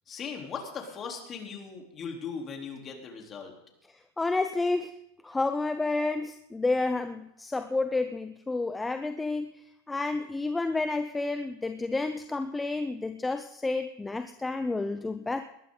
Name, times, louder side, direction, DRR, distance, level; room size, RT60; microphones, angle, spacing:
voice 1, 0.1-3.5 15.2-15.3, left 5 dB, 30° left, 1 dB, 3.7 m, -39 dB
voice 2, 3.9-4.9 5.2-9.5 9.9-15.4, left 3 dB, 10° left, 9 dB, 0.8 m, -30 dB
20.5 x 14.0 x 4.0 m, 0.80 s
hypercardioid pair, 105°, 0 cm